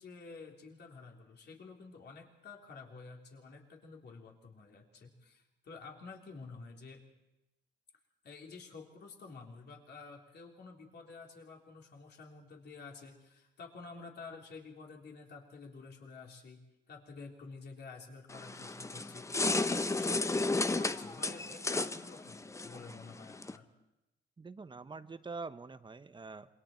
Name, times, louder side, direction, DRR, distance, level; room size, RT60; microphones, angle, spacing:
voice 1, 0.0-7.0 8.2-23.7, left 4 dB, 55° left, 0 dB, 3.6 m, -50 dB
sound 1, 18.3-23.6, left 2 dB, 15° left, 0.8 m, -33 dB
voice 2, 24.4-26.5, right 4 dB, 25° right, 11 dB, 1.0 m, -45 dB
27.0 x 22.0 x 4.5 m, 0.94 s
cardioid pair, 90°, 20 cm